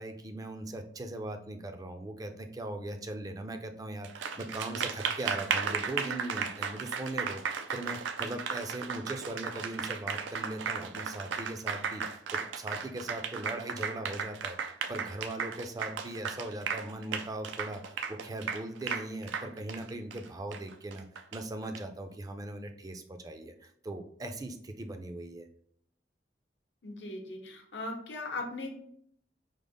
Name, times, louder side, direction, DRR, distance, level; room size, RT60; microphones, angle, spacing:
voice 1, 0.0-21.1 21.3-25.5, right 1 dB, 20° right, 6 dB, 0.4 m, -39 dB
Applause, 4.0-21.8, right 6 dB, 90° right, 0.3 m, -35 dB
voice 2, 26.8-28.8, left 2 dB, 75° left, 3 dB, 0.7 m, -39 dB
5.0 x 2.1 x 3.4 m, 0.66 s
head